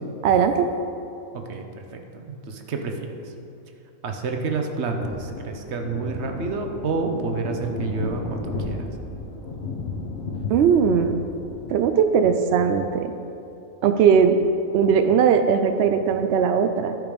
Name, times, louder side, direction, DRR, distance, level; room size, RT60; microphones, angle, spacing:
voice 1, 0.2-0.7 10.5-11.2 11.7-13.1 13.8-14.5 14.7-17.0, right 7 dB, 75° right, 7 dB, 0.6 m, -19 dB
voice 2, 1.3-1.6 1.9-3.2 4.0-8.9, right 4 dB, 50° right, 4 dB, 1.0 m, -29 dB
sound 1, 5.0-11.7, left 3 dB, 45° left, 1.2 m, -33 dB
12.5 x 5.0 x 5.2 m, 2.8 s
omnidirectional pair, 1.6 m